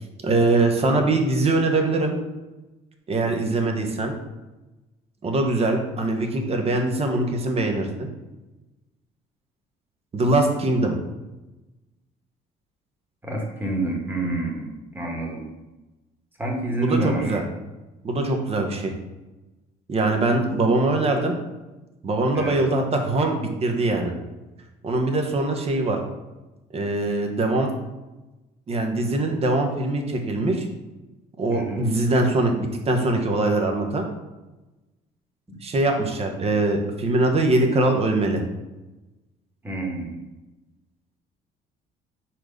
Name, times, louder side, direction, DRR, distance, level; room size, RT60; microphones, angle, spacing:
voice 1, 0.2-2.1 3.1-4.1 5.2-8.1 10.1-10.9 16.8-17.4 18.0-18.9 19.9-21.3 22.0-24.1 24.8-26.0 26.7-27.7 28.7-30.6 31.4-34.0 35.6-38.4, right 2 dB, 35° right, 3 dB, 1.1 m, -22 dB
voice 2, 13.2-15.5 16.4-17.4 22.3-22.6 31.5-32.0 35.5-35.6 39.6-40.2, right 2 dB, 10° right, -1 dB, 1.5 m, -28 dB
4.9 x 4.4 x 5.2 m, 1.1 s
cardioid pair, 110°, 17 cm